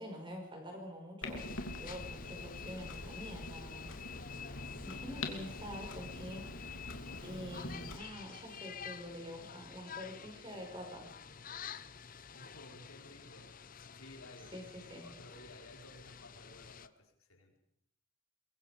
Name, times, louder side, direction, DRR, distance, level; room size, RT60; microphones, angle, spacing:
voice 1, 0.0-3.9 4.8-6.5 7.2-11.1 14.5-15.1, equal, 25° right, 2 dB, 5.5 m, -46 dB
Clock, 1.2-8.0, left 2 dB, 70° left, 2.9 m, -44 dB
sound 1, 1.4-16.9, left 7 dB, 40° left, 0.7 m, -49 dB
voice 2, 12.3-13.5 13.9-17.6, left 1 dB, 85° left, 1 dB, 4.8 m, -56 dB
23.5 x 22.5 x 5.2 m, 0.72 s
head